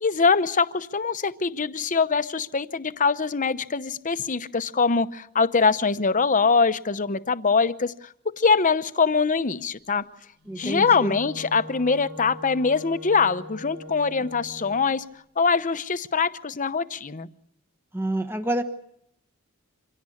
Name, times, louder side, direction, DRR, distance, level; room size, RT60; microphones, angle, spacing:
voice 1, 0.0-8.1 8.4-10.0 10.6-15.0 15.4-17.3, left 5 dB, 35° left, 13 dB, 0.8 m, -23 dB
Wind instrument woodwind instrument, 10.4-14.9, left 1 dB, 80° right, 4.3 m, -41 dB
voice 2, 10.5-11.1 17.9-18.6, right 1 dB, 10° right, 7 dB, 1.1 m, -28 dB
26.0 x 17.0 x 8.4 m, 0.75 s
head